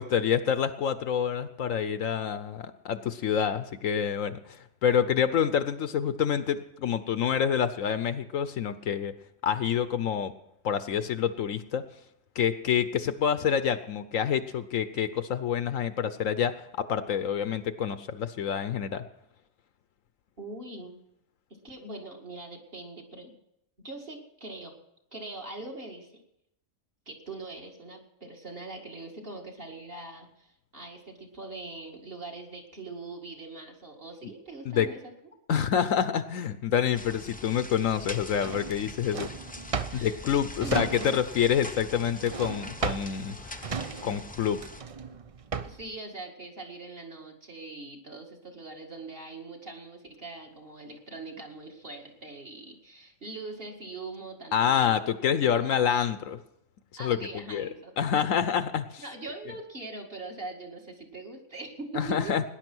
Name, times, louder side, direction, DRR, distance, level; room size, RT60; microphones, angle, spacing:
voice 1, 0.0-9.1 9.4-10.3 10.6-11.8 12.4-19.0 34.7-34.9 35.5-39.3 39.9-43.6 44.0-44.6 54.5-56.4 57.0-57.7 58.0-59.0 61.9-62.4, left 8 dB, 65° left, 12 dB, 1.0 m, -27 dB
voice 2, 20.4-21.0 21.5-23.3 23.8-24.7 25.1-26.2 27.1-35.0 39.9-40.2 40.6-41.2 45.6-55.0 55.5-55.7 57.0-58.0 59.0-62.4, right 2 dB, 40° right, 0 dB, 2.3 m, -42 dB
sound 1, 36.9-44.8, left 2 dB, 10° left, 0.5 m, -43 dB
Drawer open or close, 38.3-41.4 41.7-45.9, right 6 dB, 65° right, 0.3 m, -35 dB
18.0 x 10.5 x 6.1 m, 0.82 s
omnidirectional pair, 1.5 m